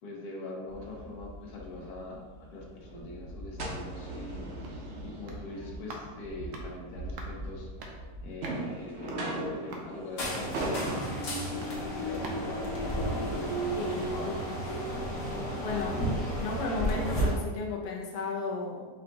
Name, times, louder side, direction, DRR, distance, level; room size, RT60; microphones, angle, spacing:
voice 1, 0.0-4.4 5.0-7.7 8.2-13.1 13.5-14.5, left 2 dB, 75° left, -2 dB, 1.3 m, -42 dB
sound 1, 0.7-16.5, right 1 dB, 55° right, 0.7 m, -41 dB
sound 2, 4.6-13.8 14.2-14.3, right 2 dB, 85° right, 1.2 m, -49 dB
sound 3, 10.2-17.3, equal, 90° left, 1.5 m, -32 dB
voice 2, 13.7-14.5 15.6-16.0 16.4-18.9, left 3 dB, 60° left, -3 dB, 0.9 m, -34 dB
4.8 x 2.3 x 3.7 m, 1.4 s
omnidirectional pair, 1.7 m